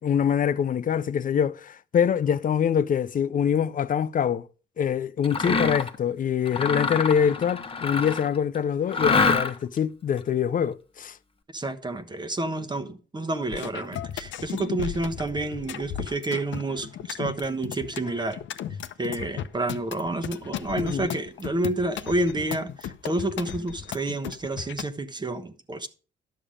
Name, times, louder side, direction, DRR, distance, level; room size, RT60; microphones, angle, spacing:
voice 1, 0.0-4.5 4.8-11.2 20.8-21.1, left 8 dB, 45° left, 0.5 m, -24 dB
Mechanisms, 5.2-6.0 6.5-8.4 8.9-9.8, left 4 dB, 25° left, 1.1 m, -25 dB
voice 2, 11.5-18.4 19.0-25.9, right 2 dB, 20° right, 1.1 m, -29 dB
sound 1, 13.5-24.9, left 10 dB, 70° left, 0.8 m, -36 dB
11.5 x 7.0 x 5.1 m
cardioid pair, 90°, 20 cm